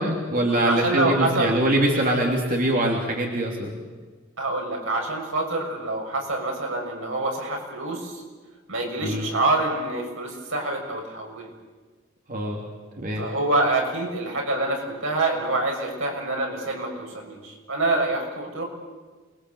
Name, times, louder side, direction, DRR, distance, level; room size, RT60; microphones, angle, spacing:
voice 1, 0.0-3.7 9.0-9.3 12.3-12.6 13.0-13.3, right 1 dB, 45° right, 0 dB, 3.2 m, -23 dB
voice 2, 0.6-1.6 4.4-8.2 8.7-11.5 13.2-18.6, right 2 dB, 80° right, 1 dB, 6.5 m, -26 dB
28.0 x 21.5 x 8.1 m, 1.4 s
head